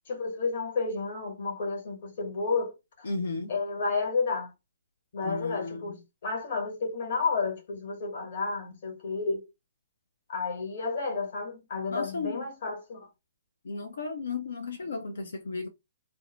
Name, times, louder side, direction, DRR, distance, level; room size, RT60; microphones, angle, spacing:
voice 1, 0.1-3.1 3.5-4.5 5.1-9.4 10.3-13.1, left 4 dB, 60° left, 1.2 m, -31 dB
voice 2, 3.0-3.5 5.2-5.9 11.9-12.5 13.6-15.7, left 3 dB, 85° left, 0.4 m, -34 dB
2.6 x 2.0 x 3.0 m
hypercardioid pair, 145°, 0 cm